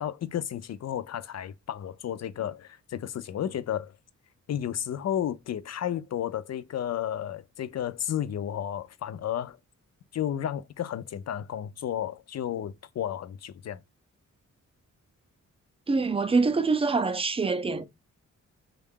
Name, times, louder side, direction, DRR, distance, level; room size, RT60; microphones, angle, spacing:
voice 1, 0.0-3.9 4.5-9.6 10.1-13.8, left 10 dB, 60° left, 0.4 m, -32 dB
voice 2, 15.9-17.9, right 4 dB, 20° right, 0.4 m, -25 dB
3.6 x 2.3 x 3.5 m
wide cardioid pair, 105°, 31 cm